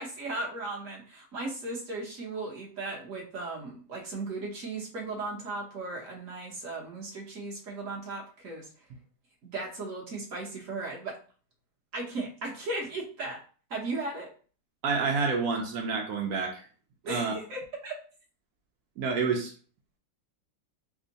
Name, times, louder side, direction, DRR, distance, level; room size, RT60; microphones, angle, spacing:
voice 1, 0.0-8.7 9.4-11.2 11.9-13.4 13.7-14.3 17.0-17.9, right 2 dB, 50° right, -2 dB, 1.1 m, -36 dB
voice 2, 14.8-16.7 17.1-17.4 19.0-19.5, right 4 dB, 75° right, 1 dB, 0.8 m, -28 dB
3.5 x 2.1 x 3.9 m, 0.40 s
omnidirectional pair, 2.2 m